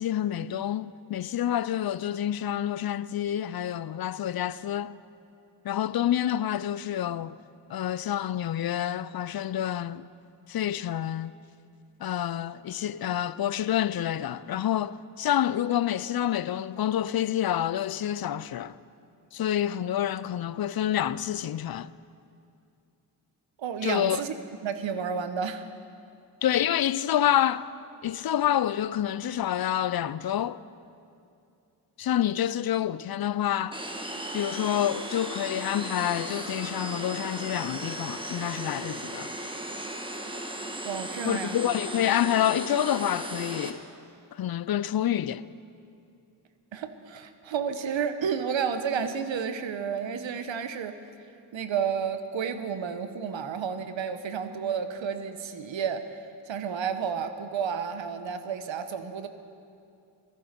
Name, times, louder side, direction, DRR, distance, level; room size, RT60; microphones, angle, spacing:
voice 1, 0.0-5.0 5.6-7.4 7.7-10.0 10.5-11.3 12.0-18.8 19.3-21.9 23.8-24.2 26.4-27.6 28.0-30.6 32.0-33.8 34.3-39.3 41.2-43.8 44.3-45.4, left 11 dB, 50° left, 0.6 m, -28 dB
voice 2, 23.6-24.3 24.6-25.7 40.8-41.5 46.7-51.0 51.5-56.2 56.5-59.3, right 7 dB, 70° right, 1.1 m, -31 dB
sound 1, 33.7-43.7, right 1 dB, 10° right, 1.6 m, -36 dB
18.0 x 14.0 x 5.2 m
cardioid pair, 50°, 47 cm